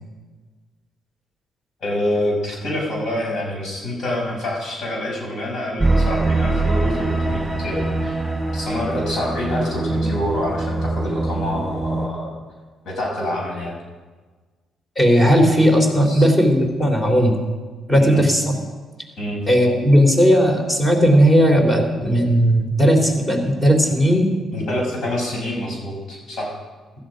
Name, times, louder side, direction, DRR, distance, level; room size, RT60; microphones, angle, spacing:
voice 1, 1.8-8.1 8.5-12.3 12.8-13.8 16.1-16.3 18.0-18.2 19.2-19.5 24.5-26.5, left 1 dB, 60° left, -1 dB, 6.2 m, -26 dB
sound 1, 5.8-12.1, right 2 dB, 10° right, 4.5 m, -23 dB
voice 2, 15.0-17.3 17.9-18.5 19.5-24.3, equal, 20° left, 3 dB, 3.5 m, -16 dB
16.0 x 13.5 x 5.2 m, 1.4 s
cardioid pair, 90°, 0 cm